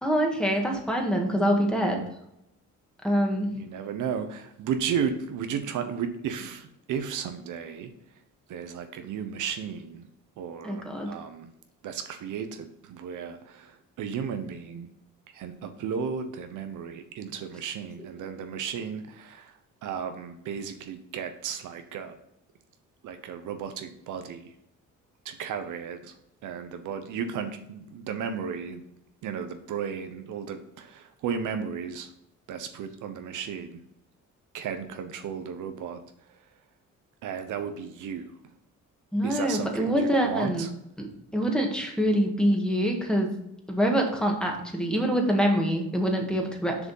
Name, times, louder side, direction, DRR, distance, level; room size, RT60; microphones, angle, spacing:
voice 1, 0.0-2.0 3.0-3.6 10.6-11.2 39.1-40.7 41.0-41.1 41.3-43.3 43.7-46.9, equal, 5° left, 1 dB, 1.8 m, -25 dB
voice 2, 3.6-7.9 8.5-10.1 10.4-11.5 11.8-14.9 15.3-22.2 23.0-24.5 25.2-26.1 26.4-28.8 29.2-32.1 32.5-33.8 34.5-36.0 37.2-38.3 39.2-40.7, right 7 dB, 75° right, 8 dB, 1.0 m, -34 dB
6.8 x 5.1 x 5.5 m, 0.81 s
cardioid pair, 100°, 31 cm